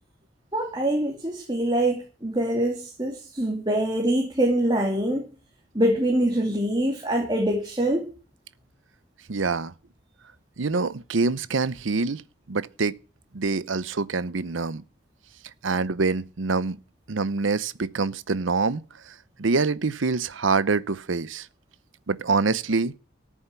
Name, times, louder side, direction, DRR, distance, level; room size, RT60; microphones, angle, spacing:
voice 1, 0.5-5.3 5.7-8.1, right 1 dB, 20° right, 2.6 m, -24 dB
voice 2, 9.3-9.7 10.6-12.2 12.5-13.0 13.3-14.8 15.6-16.8 17.1-21.5 22.1-22.9, right 4 dB, 80° right, 0.7 m, -25 dB
13.5 x 7.2 x 8.4 m
head